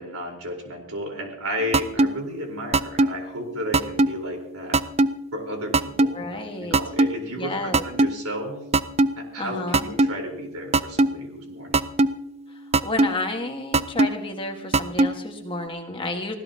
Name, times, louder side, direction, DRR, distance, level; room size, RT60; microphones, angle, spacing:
voice 1, 0.0-4.8 5.3-6.1 6.6-8.6 9.2-11.8, equal, 75° right, 3 dB, 4.0 m, -33 dB
sound 1, 1.7-2.1 2.7-3.1 3.7-4.1 4.7-5.1 5.7-6.1 6.7-7.1 7.7-8.1 8.7-9.1 9.7-10.1 10.7-11.1 11.7-12.1 12.7-13.1 13.7-14.1 14.7-15.1, right 2 dB, 25° right, 0.4 m, -17 dB
voice 2, 6.1-6.8 7.4-7.8 9.4-9.8 12.8-16.3, left 2 dB, 25° left, 4 dB, 1.5 m, -31 dB
24.5 x 16.0 x 2.8 m, 0.84 s
head